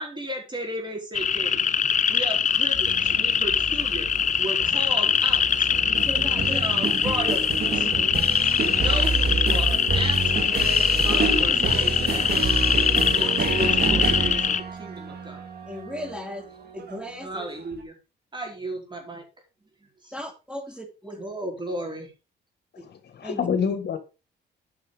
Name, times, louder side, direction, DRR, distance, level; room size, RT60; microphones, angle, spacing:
voice 1, 0.0-1.6 2.1-4.1 4.4-5.7 6.4-8.0 8.7-10.2 11.0-12.3 13.1-15.4 17.2-17.9 18.3-19.2 20.0-20.1 21.2-22.1, right 1 dB, 25° right, 2 dB, 4.4 m, -34 dB
sound 1, 1.1-14.6, left 7 dB, 40° left, 0.7 m, -23 dB
sound 2, 2.7-17.8, right 4 dB, 50° right, 2.2 m, -29 dB
voice 2, 5.8-6.6 10.8-10.9 11.1-11.2 13.2-13.3 15.7-16.5 16.7-17.4 20.1-21.2 22.8-22.9 23.2-23.5, equal, 5° right, 5 dB, 3.0 m, -37 dB
voice 3, 22.7-24.0, left 6 dB, 55° left, 9 dB, 1.5 m, -27 dB
9.6 x 6.1 x 4.9 m, 0.30 s
cardioid pair, 90°, 20 cm